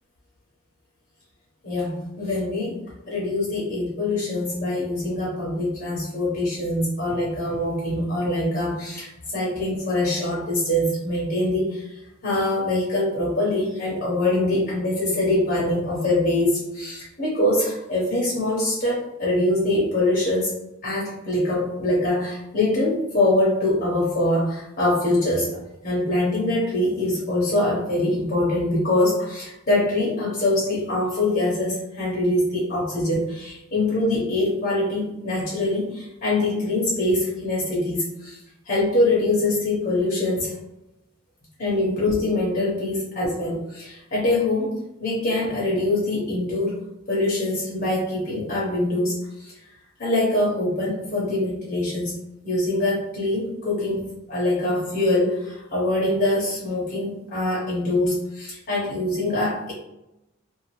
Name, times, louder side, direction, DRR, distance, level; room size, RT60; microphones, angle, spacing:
voice 1, 1.6-2.8 3.1-20.5 20.8-38.4 38.7-40.5 41.6-44.7 45.0-46.8 47.1-49.5 50.0-52.1 52.4-59.7, left 1 dB, 45° left, -6 dB, 0.9 m, -24 dB
2.7 x 2.4 x 3.0 m, 0.90 s
head